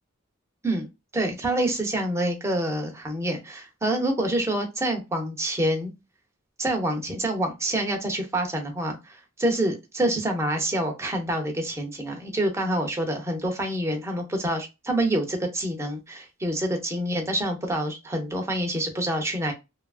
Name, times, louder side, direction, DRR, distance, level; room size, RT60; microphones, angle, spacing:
voice 1, 1.1-5.9 6.6-19.5, right 1 dB, 15° right, 0.6 m, -27 dB
2.8 x 2.4 x 2.3 m
head